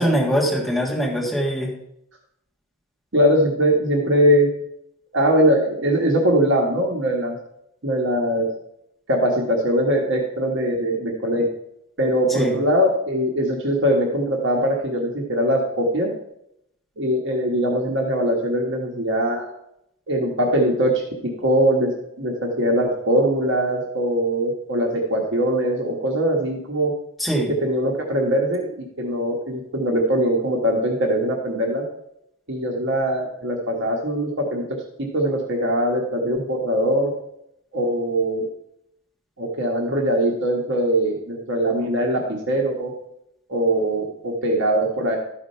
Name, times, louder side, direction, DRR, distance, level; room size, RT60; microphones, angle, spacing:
voice 1, 0.0-1.7 12.3-12.6 27.2-27.5, equal, ahead, -3 dB, 1.5 m, -22 dB
voice 2, 3.1-4.5 5.1-7.4 7.8-8.5 9.1-11.5 12.0-16.1 17.0-19.5 20.1-26.9 27.6-31.8 32.5-37.1 37.7-38.5 39.4-42.9 43.5-45.2, right 1 dB, 55° right, -1 dB, 1.3 m, -21 dB
12.5 x 4.9 x 5.5 m, 0.78 s
head